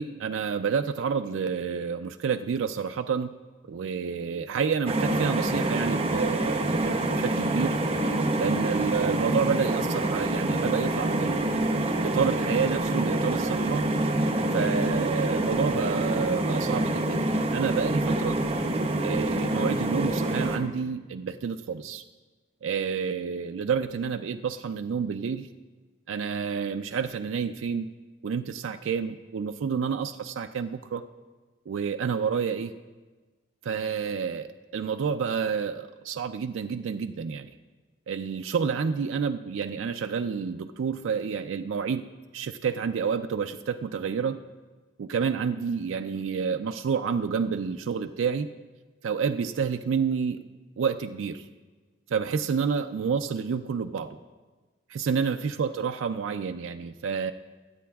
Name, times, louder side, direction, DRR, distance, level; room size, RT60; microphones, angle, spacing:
voice 1, 0.0-3.3 3.7-7.8 8.4-11.6 12.0-13.8 14.5-18.4 19.0-22.0 22.6-25.5 26.1-27.9 28.2-31.0 31.7-32.7 33.6-37.5 38.1-42.0 42.3-44.4 45.0-48.5 49.0-50.4 50.8-51.4 52.1-54.2 54.9-57.3, right 6 dB, 80° right, 7 dB, 0.4 m, -29 dB
sound 1, 4.9-20.6, right 1 dB, 30° right, 0.7 m, -26 dB
21.5 x 8.5 x 2.3 m, 1.3 s
head